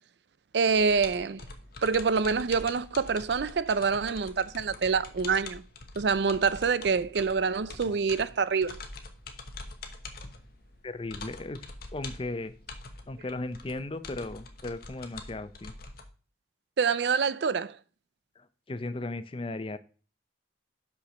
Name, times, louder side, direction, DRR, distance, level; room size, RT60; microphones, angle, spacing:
voice 1, 0.5-1.4 1.8-5.6 6.0-8.8 16.8-17.8, right 5 dB, 65° right, 0.5 m, -26 dB
sound 1, 0.7-16.1, left 3 dB, 55° left, 1.1 m, -45 dB
voice 2, 10.8-11.7 11.9-12.5 13.1-15.7 18.4-19.8, left 2 dB, 30° left, 0.5 m, -36 dB
5.9 x 5.8 x 6.3 m
head